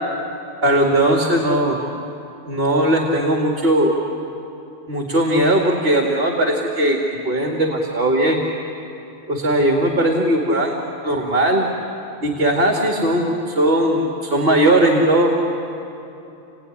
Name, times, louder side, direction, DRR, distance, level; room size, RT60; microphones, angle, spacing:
voice 1, 0.6-1.8 2.4-4.0 4.9-7.0 7.3-8.4 9.3-10.8 11.0-11.7 12.2-15.3, right 1 dB, 50° right, 0 dB, 2.2 m, -18 dB
29.5 x 17.5 x 9.9 m, 2.8 s
omnidirectional pair, 1.3 m